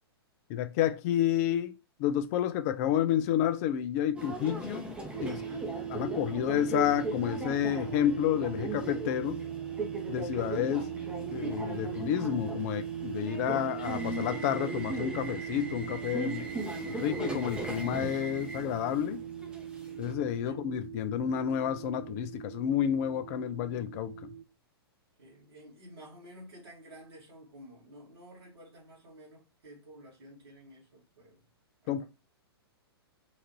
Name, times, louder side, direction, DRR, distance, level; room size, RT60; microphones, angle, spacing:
voice 1, 0.5-5.4 5.9-9.4 10.1-10.9 11.3-16.5 16.9-19.2 20.0-24.3 31.9-32.0, left 10 dB, 35° left, 0.5 m, -30 dB
Subway metro underground, 4.2-20.1, right 2 dB, 10° right, 0.8 m, -39 dB
sound 1, 5.1-24.4, right 9 dB, 45° right, 0.6 m, -40 dB
voice 2, 5.2-5.7 20.4-20.6 25.2-31.5 31.8-32.1, equal, 70° right, 2.0 m, -52 dB
4.0 x 2.5 x 4.4 m
figure-of-eight pair, 110°, 13 cm